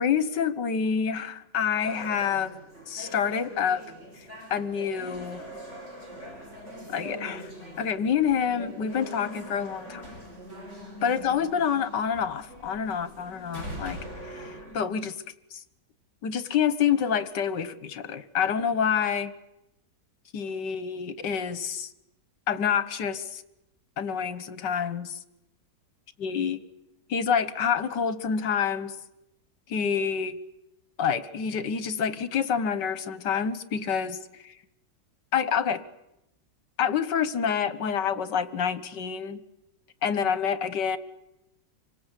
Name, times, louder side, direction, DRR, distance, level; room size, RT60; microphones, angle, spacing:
voice 1, 0.0-2.5 2.9-3.8 4.5-5.4 6.9-7.5 7.8-10.1 11.0-14.0 14.3-15.1 15.5-15.6 16.2-19.3 20.3-21.9 22.5-23.4 24.0-25.2 26.2-26.6 27.1-29.0 29.7-30.4 31.0-34.1 35.3-35.8 36.8-39.4 40.0-41.0, left 7 dB, 70° left, 13 dB, 1.9 m, -27 dB
sound 1, 1.8-14.9, equal, 40° right, 5.6 m, -42 dB
27.5 x 24.5 x 8.3 m, 0.86 s
omnidirectional pair, 2.0 m